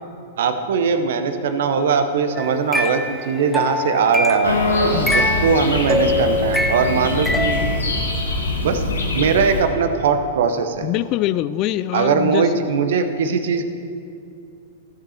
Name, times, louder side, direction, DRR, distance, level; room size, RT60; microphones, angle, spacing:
voice 1, 0.4-4.6 5.1-7.6 8.6-8.8 9.1-10.9 11.9-13.6, right 5 dB, 60° right, 0.8 m, -20 dB
sound 1, 2.4-4.5 5.1-7.8, left 1 dB, ahead, 0.6 m, -23 dB
sound 2, 4.4-9.6, left 2 dB, 80° left, 1.5 m, -23 dB
voice 2, 10.8-12.6, left 13 dB, 40° left, 0.3 m, -24 dB
15.5 x 5.8 x 4.3 m
figure-of-eight pair, 105°, 0 cm